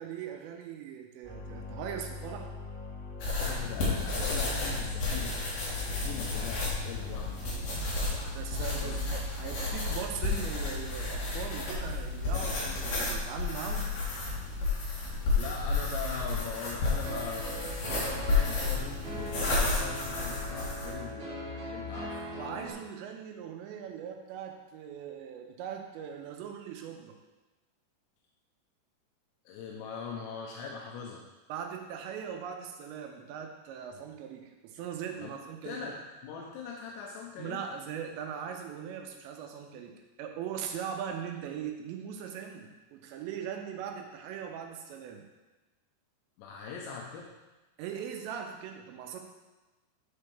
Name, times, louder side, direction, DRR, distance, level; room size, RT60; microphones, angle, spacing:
voice 1, 0.0-2.5 8.1-13.9 22.3-27.2 31.5-35.8 37.4-45.2 47.8-49.2, right 8 dB, 85° right, 3 dB, 3.0 m, -40 dB
sound 1, 1.2-7.6, left 4 dB, 35° left, 0.7 m, -42 dB
sound 2, 3.2-20.9, left 3 dB, 60° left, 3.4 m, -32 dB
voice 2, 3.4-5.4 5.8-7.4 8.8-9.0 15.4-22.1 29.5-31.2 33.9-34.0 35.2-35.3 35.6-36.0 36.2-37.6 46.4-47.3, left 6 dB, 85° left, -1 dB, 3.1 m, -41 dB
sound 3, 17.0-22.7, equal, 45° right, 1.9 m, -40 dB
11.0 x 4.6 x 3.3 m, 1.1 s
omnidirectional pair, 5.1 m